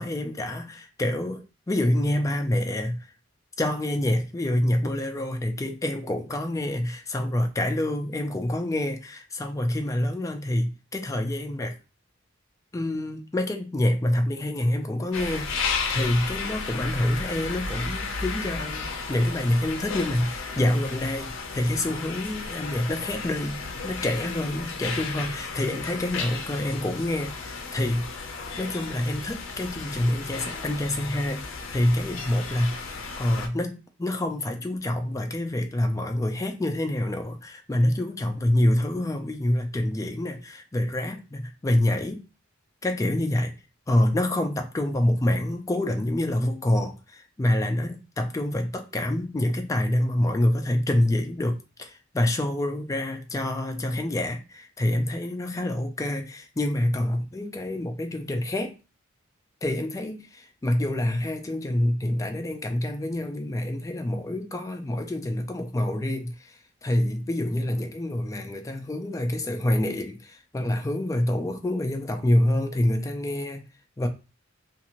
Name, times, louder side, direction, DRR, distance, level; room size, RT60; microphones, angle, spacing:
voice 1, 0.0-3.1 3.6-11.8 12.7-28.1 28.6-42.2 42.8-43.5 43.9-58.7 59.6-73.6 74.0-74.1, left 1 dB, 15° left, 0.4 m, -27 dB
sound 1, 15.1-33.5, left 4 dB, 65° left, 0.5 m, -34 dB
2.5 x 2.4 x 2.9 m
head